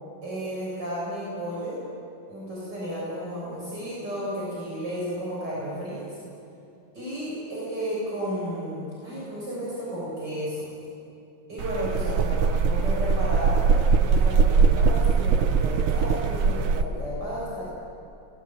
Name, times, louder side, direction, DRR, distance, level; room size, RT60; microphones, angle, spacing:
voice 1, 0.2-1.8 2.3-6.2 6.9-10.6 11.5-17.6, equal, 55° right, -7 dB, 8.3 m, -33 dB
sound 1, 11.6-16.8, right 5 dB, 85° right, 1.9 m, -21 dB
30.0 x 22.0 x 8.9 m, 2.7 s
omnidirectional pair, 2.2 m